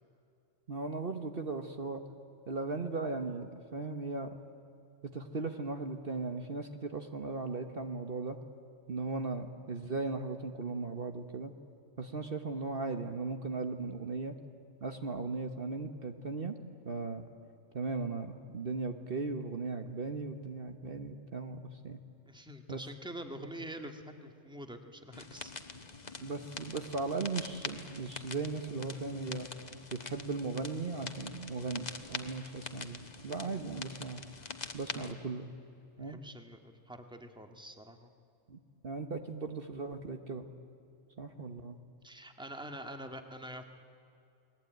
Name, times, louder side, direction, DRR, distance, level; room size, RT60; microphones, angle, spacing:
voice 1, 0.7-2.0 2.5-4.4 5.0-8.4 8.9-11.5 12.0-14.4 14.8-16.6 16.8-17.2 17.7-22.0 22.7-22.8 26.2-29.5 29.9-34.2 34.7-35.5 36.0-36.2 38.5-38.6 38.8-40.5 41.2-41.8, right 3 dB, 50° right, 6 dB, 1.4 m, -37 dB
voice 2, 22.3-25.5 33.5-33.6 34.9-35.1 36.0-38.1 42.0-43.7, right 1 dB, 5° right, 5 dB, 1.7 m, -46 dB
sound 1, 25.1-35.1, left 3 dB, 35° left, 1.4 m, -45 dB
29.5 x 21.0 x 9.2 m, 2.7 s
omnidirectional pair, 1.2 m